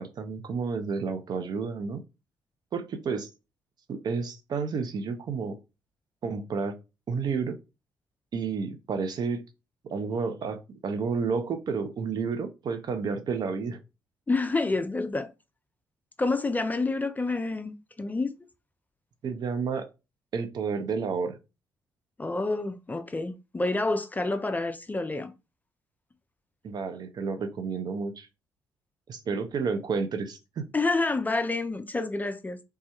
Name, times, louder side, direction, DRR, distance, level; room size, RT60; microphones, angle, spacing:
voice 1, 0.0-2.0 2.7-3.3 3.9-5.6 6.2-6.8 7.1-7.5 8.3-9.4 9.8-13.8 19.2-19.9 20.3-21.4 26.6-28.3 29.1-30.7, right 5 dB, 50° right, 0.5 m, -31 dB
voice 2, 14.3-15.3 16.2-18.3 22.2-25.3 30.7-32.6, left 3 dB, 20° left, 0.4 m, -28 dB
3.3 x 2.2 x 2.9 m
figure-of-eight pair, 40°, 9 cm